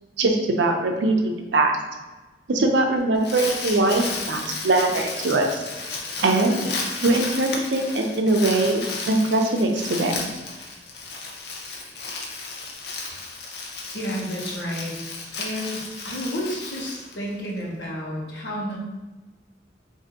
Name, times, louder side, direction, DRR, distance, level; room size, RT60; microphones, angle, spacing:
voice 1, 0.2-1.7 2.5-5.6 6.2-6.7 7.0-10.3, right 2 dB, 85° right, 3 dB, 0.5 m, -22 dB
Crumpling crinkling, 3.0-17.6, left 3 dB, 60° left, 0.6 m, -33 dB
voice 2, 13.9-15.0 15.4-18.8, equal, 80° left, -2 dB, 1.0 m, -31 dB
5.0 x 2.6 x 2.8 m, 1.2 s
head